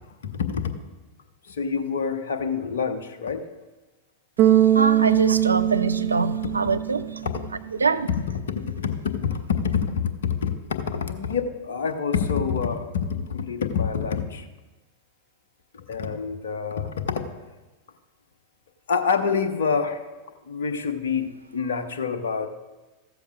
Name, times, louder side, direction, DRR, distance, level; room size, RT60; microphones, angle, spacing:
voice 1, 0.2-0.7 1.5-3.4 7.2-7.4 8.5-14.5 15.7-17.2 18.9-20.0 20.5-22.5, left 6 dB, 65° left, 8 dB, 0.9 m, -27 dB
Bass guitar, 4.4-7.5, right 12 dB, 35° right, 0.7 m, -21 dB
voice 2, 4.4-7.2 7.7-8.1, right 4 dB, 75° right, 11 dB, 0.6 m, -24 dB
15.0 x 13.0 x 2.4 m, 1.1 s
figure-of-eight pair, 90°, 0 cm